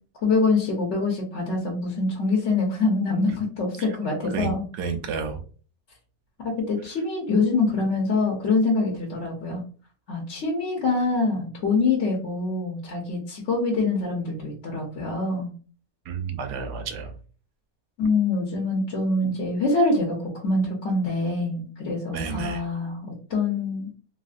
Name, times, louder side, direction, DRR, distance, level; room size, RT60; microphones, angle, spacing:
voice 1, 0.2-4.6 6.4-9.6 10.1-15.5 18.0-23.9, left 3 dB, 55° left, -2 dB, 1.0 m, -25 dB
voice 2, 4.3-5.4 16.1-17.1 22.1-22.6, right 5 dB, 90° right, 6 dB, 1.2 m, -31 dB
3.2 x 2.6 x 2.4 m, 0.40 s
omnidirectional pair, 1.6 m